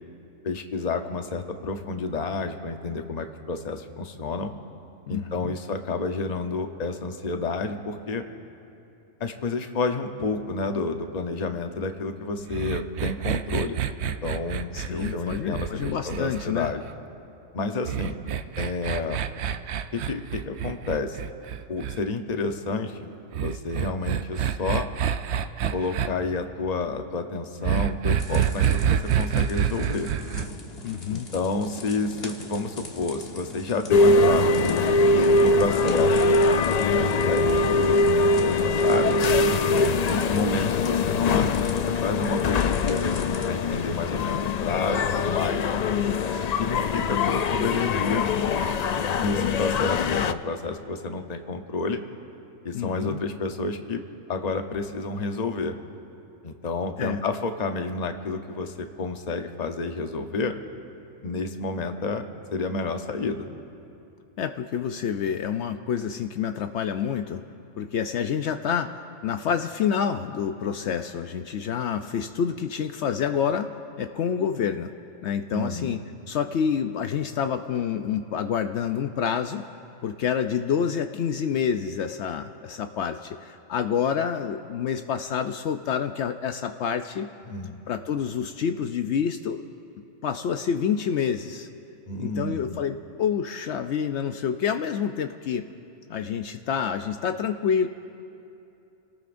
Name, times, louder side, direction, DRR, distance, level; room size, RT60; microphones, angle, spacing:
voice 1, 0.4-4.5 5.1-8.2 9.2-16.9 17.5-18.2 18.6-19.2 19.9-21.2 21.7-23.1 23.4-24.9 25.7-30.1 31.1-34.8 35.4-36.3 36.9-39.2 40.1-45.6 46.6-48.3 49.2-52.0 52.6-54.0 54.3-55.7 56.4-60.5 61.2-62.2 62.5-63.5 75.5-75.9 87.5-87.8 92.1-92.8, left 3 dB, 40° left, 6 dB, 0.9 m, -30 dB
voice 2, 5.1-5.5 14.7-16.7 30.8-31.3 52.7-53.2 57.0-57.2 64.4-67.4 67.8-68.9 69.2-73.7 74.0-74.9 75.2-76.0 76.3-79.6 80.0-87.3 87.9-89.6 90.2-91.7 92.2-95.7 96.1-97.9, left 7 dB, 70° left, 7 dB, 0.9 m, -28 dB
sound 1, 12.5-16.9 17.9-22.0 23.3-26.1 27.6-30.5, right 9 dB, 70° right, 0.8 m, -27 dB
sound 2, 28.2-43.5, left 2 dB, 55° left, 1.6 m, -41 dB
sound 3, 33.9-50.3, left 3 dB, 90° left, 0.3 m, -22 dB
30.0 x 18.5 x 2.6 m, 2.8 s
omnidirectional pair, 1.2 m